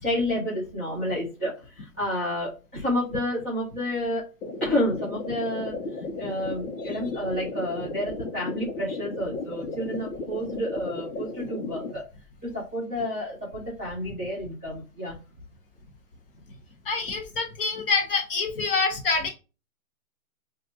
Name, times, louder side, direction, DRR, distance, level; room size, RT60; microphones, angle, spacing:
voice 1, 0.0-4.3 4.6-12.1 12.4-15.2, left 1 dB, 10° left, -13 dB, 0.4 m, -30 dB
sound 1, 4.4-11.9, left 3 dB, 85° left, 1.0 m, -35 dB
voice 2, 16.8-19.3, left 4 dB, 40° left, 2 dB, 1.3 m, -26 dB
5.2 x 2.5 x 2.7 m, 0.32 s
hypercardioid pair, 165°, 43 cm